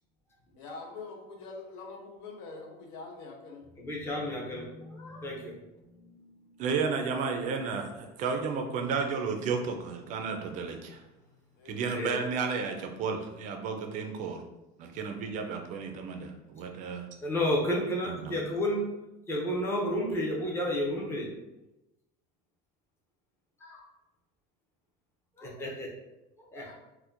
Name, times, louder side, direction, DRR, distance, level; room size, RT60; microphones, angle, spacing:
voice 1, 0.6-3.7 5.3-5.5 11.6-11.8, left 3 dB, 75° left, 0 dB, 0.8 m, -44 dB
voice 2, 3.8-6.6 7.6-7.7 11.9-12.2 17.2-19.0 19.3-21.3 23.6-23.8 25.4-25.9 26.4-26.7, left 1 dB, 10° left, -3 dB, 0.6 m, -32 dB
voice 3, 6.6-11.0 11.7-14.4 14.8-17.1 18.0-18.4, right 5 dB, 40° right, 4 dB, 0.4 m, -32 dB
4.2 x 2.2 x 2.5 m, 0.97 s
cardioid pair, 165°, 21 cm